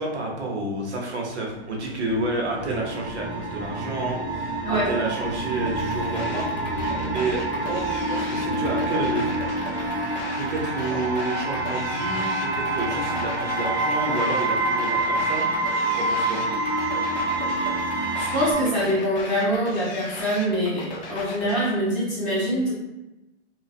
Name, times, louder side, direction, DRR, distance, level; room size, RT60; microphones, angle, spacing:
voice 1, 0.0-6.8 7.1-9.4 10.3-15.5 16.0-16.4, right 2 dB, 75° right, -1 dB, 0.9 m, -30 dB
sound 1, 1.5-18.5, right 2 dB, 40° right, 1.0 m, -27 dB
sound 2, 5.7-21.7, left 3 dB, 40° left, 0.5 m, -38 dB
voice 2, 18.2-22.7, equal, 10° right, -11 dB, 0.5 m, -24 dB
2.5 x 2.4 x 2.3 m, 0.96 s
hypercardioid pair, 135°, 34 cm